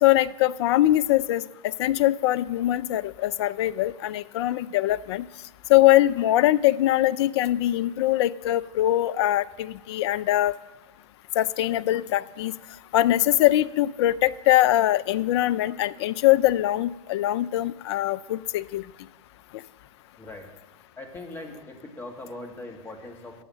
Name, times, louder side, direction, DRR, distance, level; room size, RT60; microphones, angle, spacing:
voice 1, 0.0-5.2 5.7-10.5 11.4-12.5 12.9-18.8, left 14 dB, 45° left, 16 dB, 0.4 m, -22 dB
voice 2, 20.2-20.5 21.0-23.4, left 2 dB, 10° left, 1 dB, 1.8 m, -40 dB
9.2 x 7.2 x 7.5 m, 1.1 s
hypercardioid pair, 110°, 19 cm